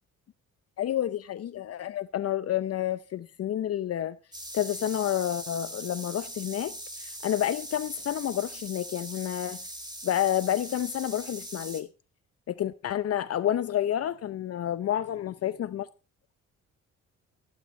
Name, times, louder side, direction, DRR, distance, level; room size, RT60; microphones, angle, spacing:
voice 1, 0.8-4.2 4.5-9.6 10.0-11.9 12.5-15.9, left 11 dB, 55° left, 0.6 m, -29 dB
sound 1, 4.3-11.8, right 1 dB, 15° right, 2.6 m, -41 dB
14.5 x 8.7 x 4.3 m
cardioid pair, 90°, 30 cm